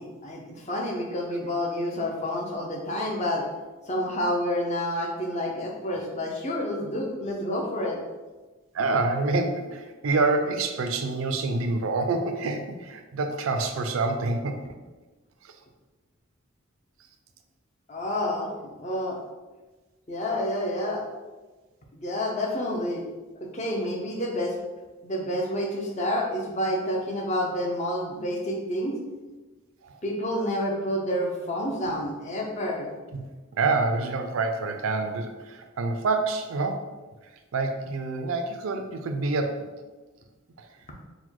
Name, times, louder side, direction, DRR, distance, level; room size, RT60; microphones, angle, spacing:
voice 1, 0.0-3.4 3.9-8.0 17.9-18.5 18.8-19.2 20.1-21.0 21.9-23.0 23.5-24.6 25.0-28.9 30.0-32.9, left 1 dB, 35° left, -1 dB, 0.6 m, -29 dB
voice 2, 8.7-14.6 29.8-30.0 33.1-33.3 33.5-36.9 37.5-39.7, right 3 dB, 75° right, 6 dB, 0.4 m, -27 dB
4.0 x 2.1 x 4.5 m, 1.2 s
head